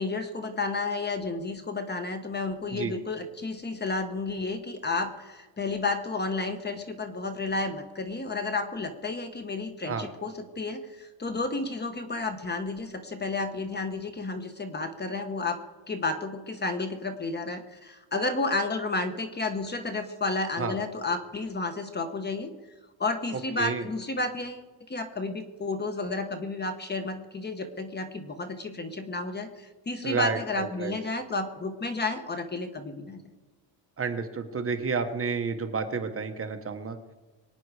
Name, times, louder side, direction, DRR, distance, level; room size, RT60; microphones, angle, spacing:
voice 1, 0.0-15.6 15.9-22.5 23.0-33.2, left 3 dB, 20° left, 8 dB, 1.1 m, -31 dB
voice 2, 30.0-31.0 34.0-37.0, right 5 dB, 30° right, 6 dB, 1.3 m, -30 dB
23.0 x 9.5 x 4.9 m, 1.2 s
cardioid pair, 155°, 46 cm